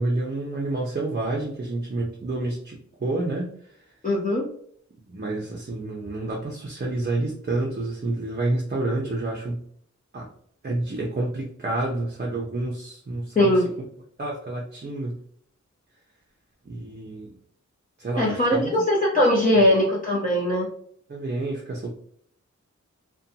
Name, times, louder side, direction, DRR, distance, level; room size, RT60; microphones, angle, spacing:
voice 1, 0.0-3.5 5.1-9.6 10.1-10.3 10.6-13.6 14.2-15.2 16.6-17.3 18.0-18.8 21.1-21.9, right 2 dB, 35° right, -2 dB, 0.5 m, -29 dB
voice 2, 4.0-4.4 13.4-13.6 18.2-20.7, left 1 dB, 30° left, -6 dB, 0.6 m, -20 dB
2.6 x 2.2 x 2.7 m, 0.64 s
wide cardioid pair, 70°, 30 cm